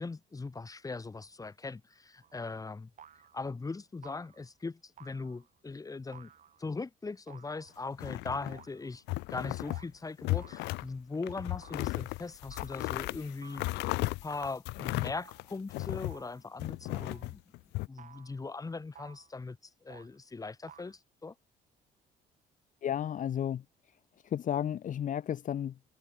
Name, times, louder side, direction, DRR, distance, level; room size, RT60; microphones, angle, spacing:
voice 1, 0.0-2.9 3.3-6.3 6.6-9.0 9.3-13.9 14.2-17.4 17.9-19.6 19.8-21.3, left 3 dB, 20° left, 5.7 m, -40 dB
sound 1, 2.2-2.5 3.0-3.5 4.0-4.5 5.0-5.6 6.1-6.7 7.3-8.0 8.5-9.0 9.7-9.9 10.4-11.0 11.6-11.9 12.5-12.8 13.4-13.8 14.3-14.6 15.1-15.5 16.1-16.5 16.9-17.3 18.0-18.4 18.9-19.3 19.9-20.2 20.7-20.9, right 9 dB, 50° right, 6.1 m, -56 dB
sound 2, 7.9-8.7 9.1-9.8 10.2-10.9 11.2-16.2 16.6-17.9, left 22 dB, 85° left, 0.5 m, -35 dB
voice 2, 22.8-23.6 24.2-25.9, left 10 dB, 50° left, 1.8 m, -33 dB
cardioid pair, 110°, 17 cm